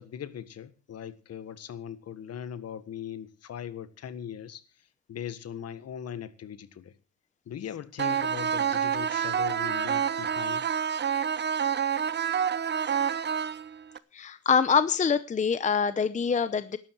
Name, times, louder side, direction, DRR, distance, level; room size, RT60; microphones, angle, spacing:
voice 1, 0.0-4.6 5.1-6.9 7.4-10.6, left 9 dB, 55° left, 1.7 m, -39 dB
sound 1, 8.0-14.0, right 8 dB, 35° right, 0.9 m, -28 dB
voice 2, 14.1-16.8, left 6 dB, 25° left, 0.8 m, -25 dB
17.5 x 12.5 x 4.7 m
cardioid pair, 140°, 31 cm